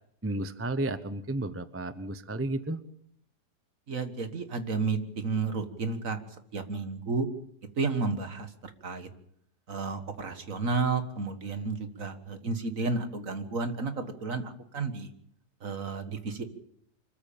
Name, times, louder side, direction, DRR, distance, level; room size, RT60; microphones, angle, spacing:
voice 1, 0.2-2.8, right 2 dB, 10° right, 12 dB, 0.7 m, -32 dB
voice 2, 3.9-6.2 6.5-7.3 7.8-9.1 9.7-15.1 15.6-16.4, right 4 dB, 55° right, 8 dB, 2.0 m, -32 dB
25.0 x 14.0 x 8.7 m, 0.70 s
omnidirectional pair, 1.7 m